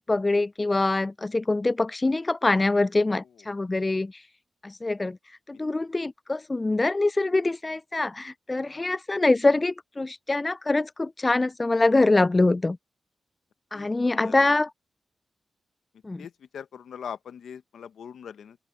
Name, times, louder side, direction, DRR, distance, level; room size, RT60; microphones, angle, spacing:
voice 1, 0.0-4.1 4.6-5.2 5.5-12.8 13.7-14.7 16.0-16.3, left 2 dB, 35° left, 0.3 m, -24 dB
voice 2, 13.7-14.5 16.2-18.6, left 8 dB, 85° left, 0.9 m, -42 dB
open air
supercardioid pair, 40°, 0 cm